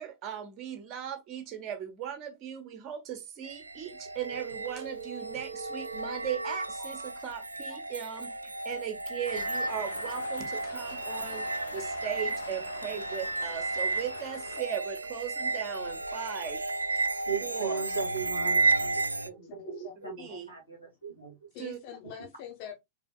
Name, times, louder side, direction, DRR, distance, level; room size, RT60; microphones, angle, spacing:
voice 1, 0.0-16.6 17.4-17.8 20.2-20.5 21.6-21.8, right 9 dB, 35° right, 1.2 m, -38 dB
sound 1, 3.4-19.3, right 3 dB, 80° right, 0.4 m, -33 dB
sound 2, 4.2-6.3, right 7 dB, 60° right, 0.9 m, -42 dB
sound 3, 9.3-14.6, left 6 dB, 70° left, 0.6 m, -45 dB
voice 2, 17.1-20.2 20.5-21.4, right 6 dB, 85° left, 2.5 m, -37 dB
voice 3, 19.4-20.4 21.5-22.8, left 9 dB, 45° left, 1.0 m, -45 dB
4.7 x 3.6 x 2.4 m
figure-of-eight pair, 90°, 0 cm